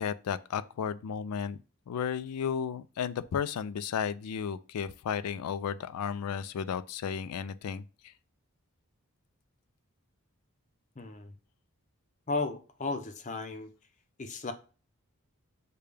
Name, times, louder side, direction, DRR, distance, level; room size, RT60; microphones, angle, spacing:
voice 1, 0.0-1.6 1.9-8.1, left 7 dB, 90° left, 0.4 m, -34 dB
voice 2, 11.0-11.3 12.3-13.7 14.2-14.5, left 3 dB, 35° left, 0.5 m, -34 dB
6.7 x 2.2 x 3.3 m
head